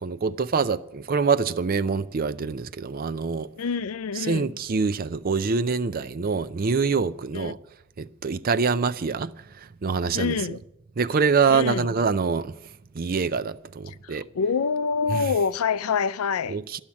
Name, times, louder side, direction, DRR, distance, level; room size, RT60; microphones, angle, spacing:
voice 1, 0.0-3.5 4.2-7.6 8.0-10.6 11.0-12.6 12.9-14.3 15.1-15.2 16.5-16.8, right 5 dB, 40° right, 0.5 m, -25 dB
voice 2, 3.6-4.5 7.3-7.5 10.1-10.6 11.5-11.9 13.9-16.6, left 5 dB, 80° left, 0.4 m, -26 dB
12.0 x 7.2 x 9.8 m
head